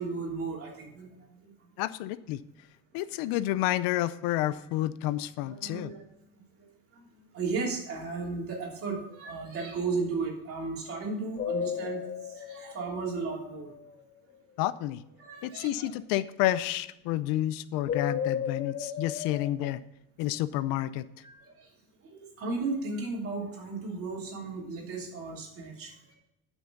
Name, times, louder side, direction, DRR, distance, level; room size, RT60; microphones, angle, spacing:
voice 1, 0.0-1.5 5.4-6.0 6.6-6.7 6.9-7.1 7.3-13.7 15.2-15.9 21.2-21.7 22.0-26.1, right 4 dB, 40° right, -1 dB, 3.1 m, -35 dB
voice 2, 1.8-2.4 2.9-5.9 14.6-15.0 15.4-19.8 20.2-21.1, left 14 dB, 85° left, 16 dB, 0.6 m, -30 dB
sound 1, 11.4-13.8 17.9-19.5, left 8 dB, 30° left, 0.5 m, -34 dB
12.0 x 6.1 x 3.9 m, 0.87 s
cardioid pair, 160°, 33 cm